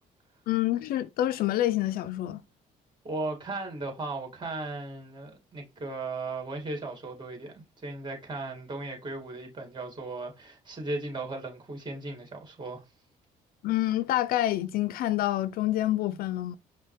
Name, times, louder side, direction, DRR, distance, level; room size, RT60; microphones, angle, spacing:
voice 1, 0.5-2.4 13.6-16.6, left 14 dB, 75° left, 0.4 m, -27 dB
voice 2, 3.0-12.8, right 2 dB, 30° right, 2.3 m, -36 dB
5.4 x 2.3 x 3.3 m
cardioid pair, 95°, 16 cm